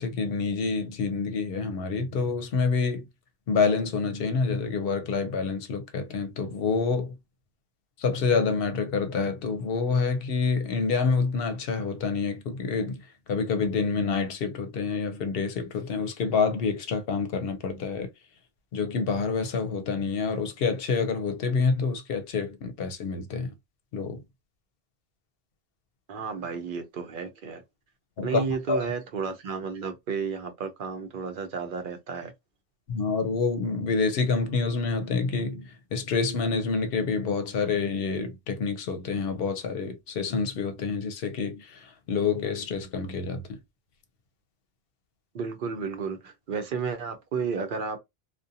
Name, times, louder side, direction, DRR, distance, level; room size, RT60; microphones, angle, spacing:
voice 1, 0.0-3.1 3.5-7.2 8.0-13.0 13.3-18.1 18.7-23.5 23.9-24.2 28.2-28.9 32.9-43.6, left 4 dB, 70° left, 0.7 m, -27 dB
voice 2, 26.1-27.6 28.2-32.3 45.3-48.0, right 5 dB, 60° right, 0.7 m, -32 dB
2.5 x 2.2 x 2.6 m
omnidirectional pair, 1.1 m